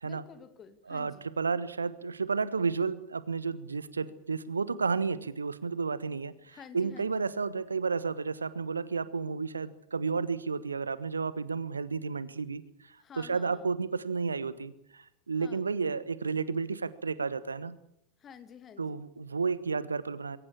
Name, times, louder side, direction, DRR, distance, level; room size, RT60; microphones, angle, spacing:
voice 1, 0.0-1.3 6.5-7.2 13.0-13.7 15.4-15.6 18.2-19.0, left 7 dB, 25° left, 10 dB, 2.4 m, -51 dB
voice 2, 0.9-12.6 13.2-17.8 18.8-20.4, right 5 dB, 75° right, 17 dB, 1.2 m, -32 dB
22.0 x 18.0 x 8.6 m, 0.76 s
figure-of-eight pair, 90°, 0 cm